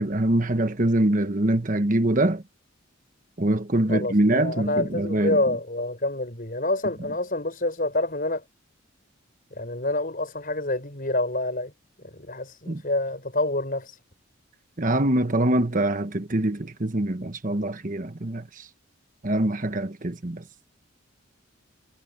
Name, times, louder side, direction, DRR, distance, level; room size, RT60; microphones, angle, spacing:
voice 1, 0.0-2.4 3.4-5.4 12.7-12.8 14.8-18.4 19.2-20.4, right 1 dB, 40° right, 1.2 m, -24 dB
voice 2, 3.9-8.4 9.6-11.7 12.1-14.0, left 2 dB, 45° left, 6.3 m, -27 dB
head